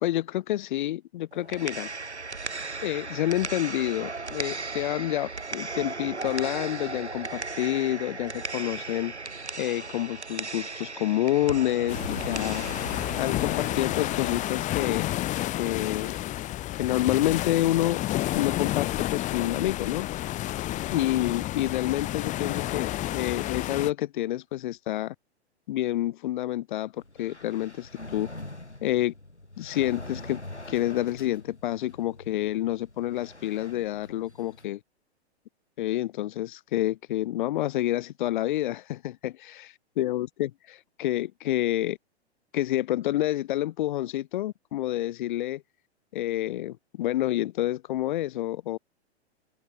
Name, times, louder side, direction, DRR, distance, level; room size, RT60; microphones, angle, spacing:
voice 1, 0.0-1.9 2.8-9.1 9.6-12.6 13.2-15.1 15.6-16.2 16.8-18.0 18.3-20.1 20.9-25.1 25.7-26.9 27.2-28.3 28.8-29.1 29.6-30.4 30.7-34.8 35.8-39.4 40.0-42.0 42.5-45.6 46.1-48.8, left 14 dB, 45° left, 2.9 m, -28 dB
sound 1, 1.3-15.3, right 3 dB, 85° right, 1.5 m, -37 dB
sound 2, 11.9-23.9, left 15 dB, 20° left, 1.7 m, -30 dB
sound 3, 27.0-34.7, left 1 dB, 90° left, 2.9 m, -44 dB
open air
figure-of-eight pair, 110°, 33 cm